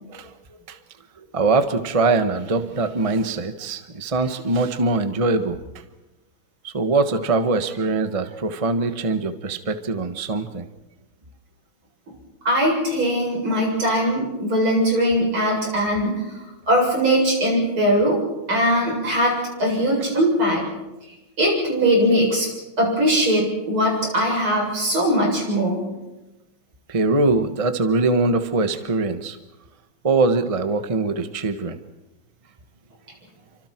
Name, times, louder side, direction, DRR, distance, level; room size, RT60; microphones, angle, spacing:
voice 1, 1.3-5.6 6.6-10.6 26.9-29.4 30.0-31.8, right 3 dB, 20° right, 8 dB, 1.0 m, -22 dB
voice 2, 12.4-16.2 16.7-18.2 18.5-20.7 21.4-22.5 22.8-25.8, equal, 80° right, -1 dB, 8.5 m, -20 dB
29.5 x 26.0 x 4.6 m, 1.0 s
omnidirectional pair, 2.3 m